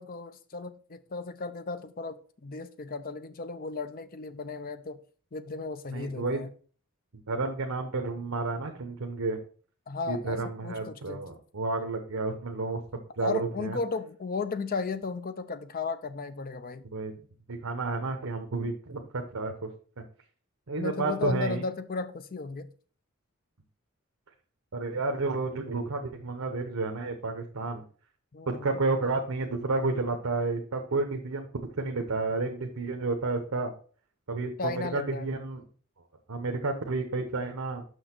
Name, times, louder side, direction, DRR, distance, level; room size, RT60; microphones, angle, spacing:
voice 1, 0.0-5.0 5.3-6.5 9.9-11.2 13.2-16.8 20.8-22.7 28.3-28.7 34.6-35.3, left 4 dB, 45° left, 11 dB, 0.6 m, -35 dB
voice 2, 5.9-6.4 7.3-9.4 10.1-12.8 13.2-13.8 16.9-17.2 17.5-19.7 20.7-21.6 24.7-27.8 28.6-31.5 31.8-33.7 34.3-35.6 36.3-37.8, right 3 dB, 80° right, 4 dB, 0.9 m, -31 dB
6.4 x 5.8 x 4.4 m, 0.42 s
head